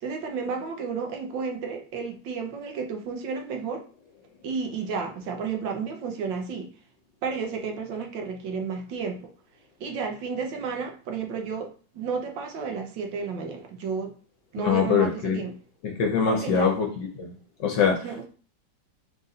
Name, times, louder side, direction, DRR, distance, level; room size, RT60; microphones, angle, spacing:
voice 1, 0.0-3.8 4.4-6.7 7.2-9.3 9.8-14.1 14.5-15.6 16.3-16.8 18.0-18.3, right 5 dB, 70° right, 3 dB, 1.5 m, -32 dB
voice 2, 14.6-15.4 15.8-17.3 17.6-18.3, left 6 dB, 70° left, 2 dB, 1.3 m, -24 dB
4.1 x 2.5 x 4.0 m, 0.40 s
omnidirectional pair, 2.2 m